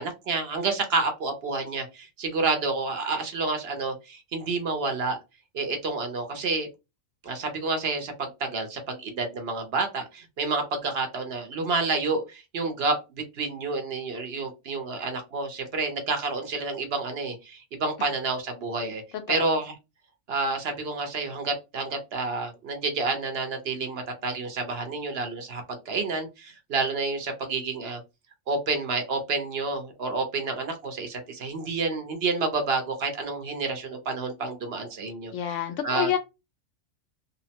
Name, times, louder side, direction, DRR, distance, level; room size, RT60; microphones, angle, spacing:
voice 1, 0.0-5.2 5.5-6.7 7.2-19.0 19.3-19.7 20.3-28.0 28.5-35.6 35.8-36.1, right 3 dB, 60° right, 0.9 m, -29 dB
voice 2, 35.3-36.2, left 9 dB, 80° left, 1.0 m, -28 dB
2.8 x 2.0 x 2.8 m
omnidirectional pair, 1.3 m